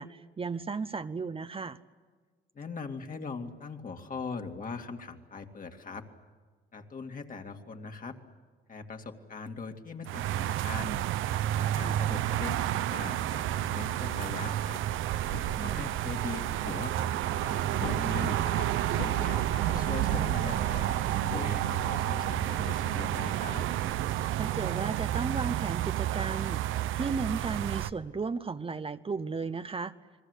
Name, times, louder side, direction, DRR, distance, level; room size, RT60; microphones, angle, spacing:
voice 1, 0.0-1.8 11.7-12.0 15.6-15.9 24.3-29.9, right 4 dB, 30° right, 11 dB, 0.8 m, -35 dB
voice 2, 2.5-6.1 6.7-8.2 8.7-11.0 11.6-14.8 15.4-18.4 18.8-23.6, left 4 dB, 45° left, 4 dB, 2.5 m, -41 dB
sound 1, 10.0-27.9, right 13 dB, 85° right, 0.7 m, -30 dB
sound 2, 11.8-25.3 25.5-25.7, left 6 dB, 75° left, 2.4 m, -45 dB
30.0 x 21.0 x 8.2 m, 1.5 s
cardioid pair, 90°, 20 cm